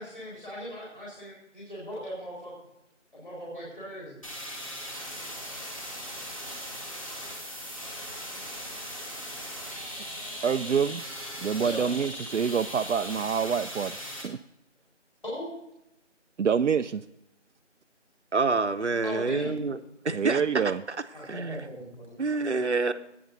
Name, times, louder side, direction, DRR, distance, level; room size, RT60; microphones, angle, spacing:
voice 1, 0.0-2.5 3.1-4.2 11.5-11.9 15.2-15.5 19.0-19.5 21.1-22.6, equal, 45° left, -5 dB, 4.6 m, -39 dB
sound 1, 4.2-14.2, equal, 25° left, 1.8 m, -39 dB
voice 2, 10.4-11.0 11.4-14.0 14.2-14.4 16.4-17.0 20.1-20.8, right 6 dB, 85° right, 8 dB, 0.5 m, -26 dB
voice 3, 18.3-19.8 20.0-20.7 21.2-21.7 22.2-22.9, right 3 dB, 65° right, 10 dB, 0.9 m, -27 dB
18.0 x 9.4 x 2.6 m, 0.84 s
figure-of-eight pair, 175°, 36 cm